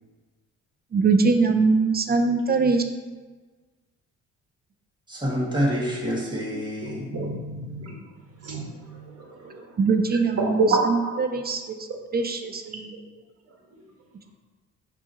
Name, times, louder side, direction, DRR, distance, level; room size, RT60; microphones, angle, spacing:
voice 1, 0.9-2.8 9.8-11.8 12.1-12.9, right 4 dB, 30° right, 6 dB, 0.6 m, -22 dB
voice 2, 5.1-7.1, equal, 15° right, -4 dB, 1.9 m, -27 dB
voice 3, 6.8-7.9 8.4-8.8 10.4-10.8, right 3 dB, 50° right, -1 dB, 1.6 m, -26 dB
6.0 x 3.1 x 5.6 m, 1.3 s
cardioid pair, 90°, 30 cm